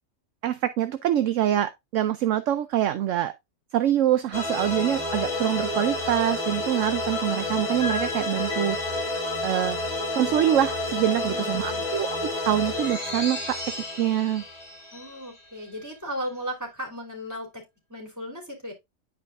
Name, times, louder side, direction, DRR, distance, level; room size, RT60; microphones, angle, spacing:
voice 1, 0.4-3.3 3.7-8.8 9.4-9.8 10.1-12.2 12.5-13.6 14.0-14.4, right 11 dB, 70° right, 0.9 m, -25 dB
sound 1, 4.3-15.7, left 2 dB, 45° left, 2.6 m, -31 dB
sound 2, 5.1-12.9, left 1 dB, 65° left, 0.6 m, -36 dB
voice 2, 11.1-11.9 14.9-17.6 17.9-18.7, equal, 10° right, 3.2 m, -36 dB
10.5 x 4.7 x 2.4 m
omnidirectional pair, 1.5 m